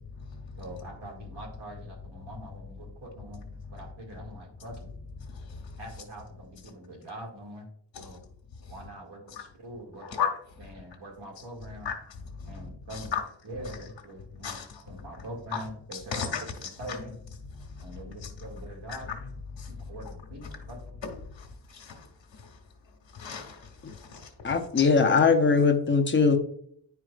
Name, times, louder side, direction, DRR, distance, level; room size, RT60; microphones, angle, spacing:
voice 1, 0.6-3.4 3.7-4.9 5.8-7.7 8.0-8.2 8.7-10.1 10.6-11.9 12.5-13.1 13.4-14.6 14.8-16.2 16.8-17.1 17.8-19.1 19.7-20.1 20.3-20.4 20.7-20.8, right 1 dB, 60° right, 2.4 m, -43 dB
voice 2, 5.2-5.6 7.9-8.2 9.3-9.4 10.1-10.3 11.8-11.9 12.4-13.2 14.4-14.8 15.5-15.6 15.9-16.4 17.7-18.3 18.9-19.0 19.6-19.7 21.4-22.1 23.1-24.8, left 7 dB, 70° left, 1.4 m, -35 dB
voice 3, 24.4-26.4, left 5 dB, 25° left, 0.7 m, -21 dB
10.0 x 4.7 x 2.4 m
wide cardioid pair, 150°, 46 cm